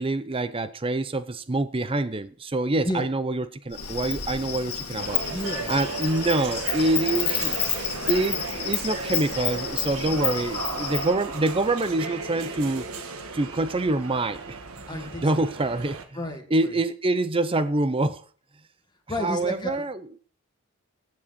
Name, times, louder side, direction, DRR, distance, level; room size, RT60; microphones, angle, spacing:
voice 1, 0.0-5.2 5.7-7.6 8.1-12.8 13.3-14.6 14.9-16.0 16.5-18.2 19.2-20.0, right 2 dB, 25° right, 0.6 m, -26 dB
Insect, 3.7-11.1, left 10 dB, 80° left, 1.9 m, -30 dB
sound 1, 5.0-16.0, right 4 dB, 70° right, 1.6 m, -35 dB
voice 2, 5.2-5.7 10.1-10.3 14.9-15.4 16.1-16.8 19.1-19.9, left 1 dB, 20° left, 1.8 m, -32 dB
16.0 x 7.7 x 4.2 m
head